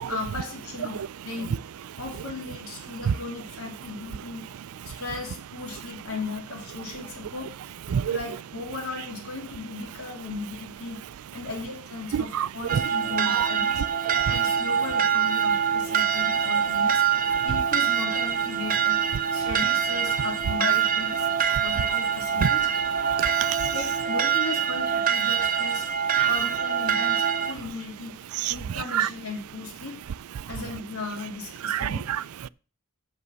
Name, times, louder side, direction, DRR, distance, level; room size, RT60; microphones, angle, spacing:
voice 1, 0.1-1.6 2.0-4.5 4.8-7.5 8.1-11.0 11.3-13.8 14.2-17.0 17.4-19.0 19.3-22.7 23.7-25.9 26.2-30.0 30.5-32.1, left 3 dB, 75° left, 2.9 m, -36 dB
voice 2, 12.1-12.8 13.3-13.5 14.0-14.3 21.5-21.6 22.4-22.5 23.1-23.7 26.2-26.3 28.4-29.1 30.4-30.5 31.6-32.5, right 8 dB, 80° right, 0.4 m, -28 dB
sound 1, 12.7-27.5, right 8 dB, 40° right, 0.8 m, -24 dB
8.3 x 7.2 x 6.3 m
head